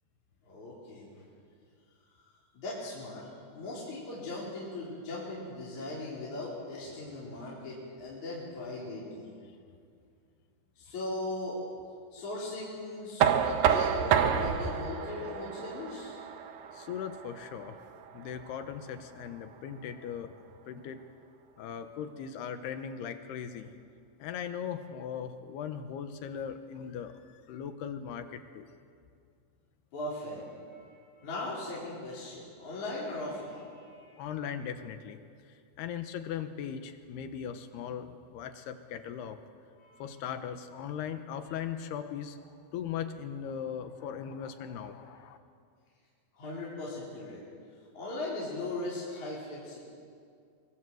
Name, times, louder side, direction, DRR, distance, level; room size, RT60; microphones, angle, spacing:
voice 1, 0.5-1.3 2.5-9.3 10.8-11.6 12.1-16.2 29.9-34.2 39.8-40.0 46.3-47.4 47.9-49.8, left 2 dB, 45° left, -6 dB, 5.5 m, -39 dB
Knock, 13.2-19.0, right 8 dB, 70° right, 2.1 m, -29 dB
voice 2, 16.7-17.8 18.1-20.3 20.7-21.0 21.6-23.7 24.2-28.7 34.2-35.2 35.8-39.4 40.0-42.4 42.7-45.4, left 8 dB, 75° left, 8 dB, 3.1 m, -39 dB
24.0 x 23.5 x 7.9 m, 2.3 s
omnidirectional pair, 5.0 m